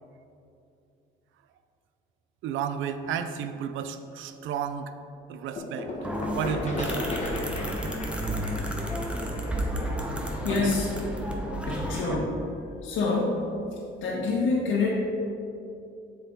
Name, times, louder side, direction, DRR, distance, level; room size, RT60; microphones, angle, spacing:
voice 1, 2.4-4.9 5.3-5.9 6.3-7.2 10.5-10.7, right 8 dB, 70° right, 9 dB, 0.5 m, -32 dB
sound 1, 5.6-11.1, left 2 dB, 35° left, 1.3 m, -36 dB
sound 2, 6.0-12.1, equal, 5° right, 0.9 m, -31 dB
voice 2, 10.4-10.9 11.7-13.4 13.7-15.0, left 3 dB, 70° left, -5 dB, 1.3 m, -27 dB
7.8 x 4.7 x 3.8 m, 2.7 s
cardioid pair, 90°, 21 cm